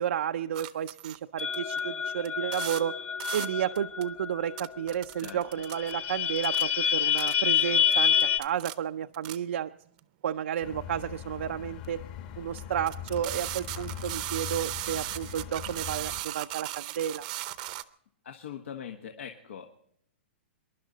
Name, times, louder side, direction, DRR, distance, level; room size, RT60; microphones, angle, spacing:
voice 1, 0.0-2.9 3.3-9.7 10.2-12.0 12.4-17.3, right 9 dB, 80° right, 6 dB, 0.5 m, -32 dB
sound 1, 0.5-1.8 2.2-2.3 2.5-2.8 3.2-3.5 3.7-4.0 4.6-5.9 6.4-6.6 7.2-7.3 7.9-9.4 10.0-10.1 11.8-11.9 12.6-12.7 12.9-17.8, right 17 dB, 40° right, 0.7 m, -37 dB
sound 2, 1.4-4.9 5.3-5.4 5.6-8.4, left 8 dB, 20° left, 0.5 m, -28 dB
sound 3, 10.6-16.2, left 9 dB, 40° left, 1.5 m, -41 dB
voice 2, 18.2-19.7, left 8 dB, 85° left, 4 dB, 1.5 m, -41 dB
26.5 x 11.5 x 4.0 m, 0.70 s
hypercardioid pair, 160°, 7 cm